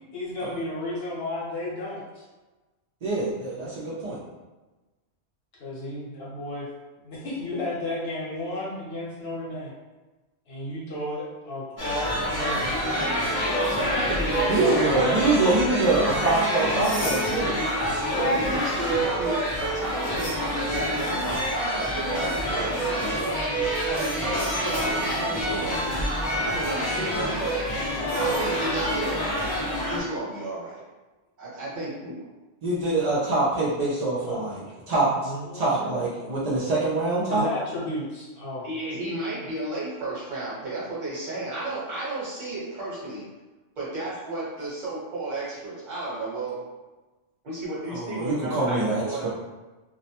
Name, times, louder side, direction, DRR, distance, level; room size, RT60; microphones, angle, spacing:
voice 1, 0.1-2.2 5.6-6.7 7.0-9.7 10.5-12.8 14.5-14.9 34.2-34.4 35.3-36.0 37.3-38.7, left 1 dB, 60° left, -6 dB, 1.0 m, -33 dB
voice 2, 3.0-4.2 14.5-17.5 32.6-34.6 34.9-37.5 47.9-49.3, right 2 dB, 65° right, -7 dB, 0.4 m, -25 dB
sound 1, 11.8-30.0, equal, 40° left, 0.3 m, -26 dB
voice 3, 13.6-14.4 18.2-23.4 23.9-26.1 26.3-27.6 28.2-29.2 29.8-30.8 31.4-32.2 38.6-43.3 43.8-46.6 47.4-49.3, right 2 dB, 45° right, -7 dB, 1.0 m, -33 dB
2.3 x 2.0 x 2.8 m, 1.2 s
omnidirectional pair, 1.3 m